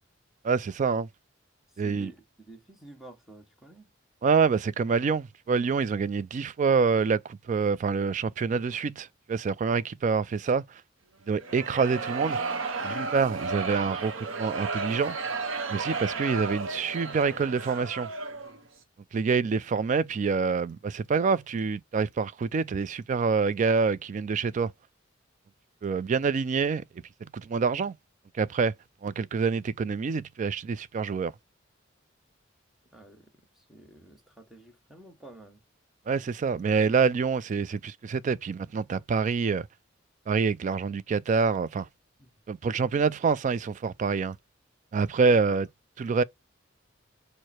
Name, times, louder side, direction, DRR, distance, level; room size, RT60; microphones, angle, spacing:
voice 1, 0.4-1.1 1.8-2.1 4.2-10.6 11.3-12.4 12.8-15.2 15.7-18.1 19.1-24.7 25.8-26.8 27.2-27.9 28.4-28.7 29.0-31.3 36.1-39.6 40.3-41.9 42.5-44.4 44.9-45.7 46.0-46.2, right 5 dB, 40° right, 0.3 m, -26 dB
voice 2, 1.8-3.9 32.9-33.3 33.6-35.6 42.2-42.3, right 2 dB, ahead, 1.0 m, -50 dB
sound 1, 11.4-18.6, right 4 dB, 90° right, 0.9 m, -33 dB
4.7 x 2.1 x 4.2 m
head